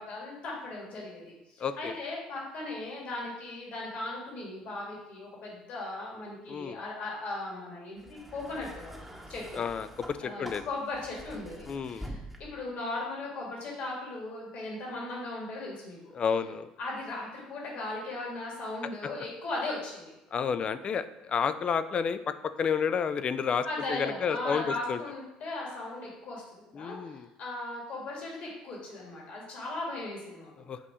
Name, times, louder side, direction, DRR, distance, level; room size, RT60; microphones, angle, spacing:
voice 1, 0.0-9.0 9.3-9.6 10.2-16.1 16.8-20.1 23.6-30.7, left 2 dB, 60° left, -3 dB, 2.1 m, -38 dB
voice 2, 1.6-1.9 6.5-6.8 9.5-10.7 11.7-12.1 16.1-16.7 20.3-25.0 26.7-27.3 30.7-30.8, left 6 dB, 40° left, 12 dB, 0.4 m, -31 dB
sound 1, 8.0-12.7 13.7-13.9, equal, 5° right, 1.0 m, -46 dB
7.6 x 2.8 x 4.9 m, 0.96 s
supercardioid pair, 75°, 3 cm